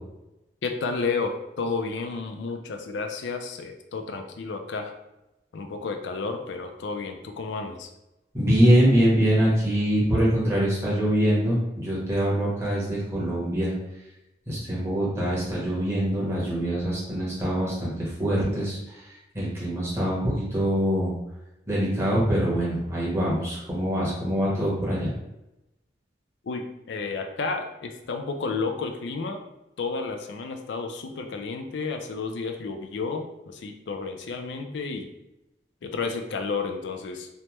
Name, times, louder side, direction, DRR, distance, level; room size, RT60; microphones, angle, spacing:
voice 1, 0.6-4.9 5.5-7.9 26.4-29.4 29.8-35.1 35.8-37.3, left 4 dB, 80° left, 5 dB, 0.4 m, -31 dB
voice 2, 8.3-13.7 14.5-19.0 19.3-21.1 21.7-25.1, equal, 15° right, -7 dB, 1.0 m, -24 dB
3.2 x 2.1 x 2.9 m, 0.93 s
head